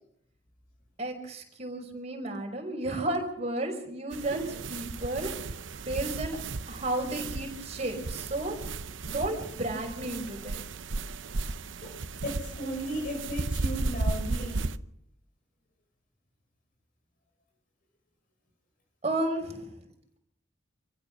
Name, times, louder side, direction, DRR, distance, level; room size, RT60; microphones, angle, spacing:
voice 1, 1.0-6.4 6.7-8.6 9.0-10.6 19.0-19.7, right 2 dB, 35° right, 2 dB, 5.5 m, -33 dB
sound 1, 4.1-14.8, right 3 dB, 85° right, 0.8 m, -35 dB
voice 2, 12.2-14.7, equal, 50° left, 2 dB, 5.7 m, -35 dB
27.5 x 15.5 x 6.3 m, 0.72 s
head